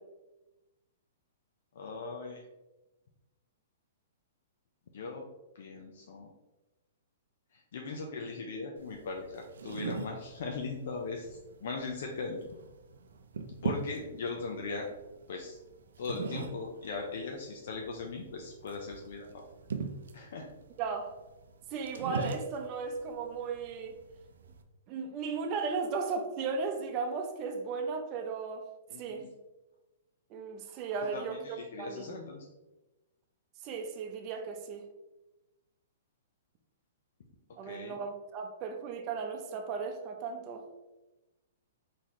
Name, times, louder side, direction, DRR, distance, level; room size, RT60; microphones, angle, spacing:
voice 1, 1.7-2.4 4.9-5.2 5.5-6.3 7.7-12.4 13.6-14.9 15.3-15.6 16.0-19.4 20.1-20.5 28.9-29.3 31.1-32.5 37.6-38.0, left 4 dB, 70° left, 1 dB, 0.7 m, -39 dB
sound 1, 8.8-24.6, right 5 dB, 85° right, 0.5 m, -42 dB
voice 2, 20.8-21.1 21.7-24.0 24.9-28.7 29.0-29.2 30.3-32.2 33.6-34.8 37.6-40.7, right 5 dB, 30° right, 4 dB, 0.6 m, -36 dB
4.3 x 4.0 x 3.1 m, 1.0 s
hypercardioid pair, 150°, 0 cm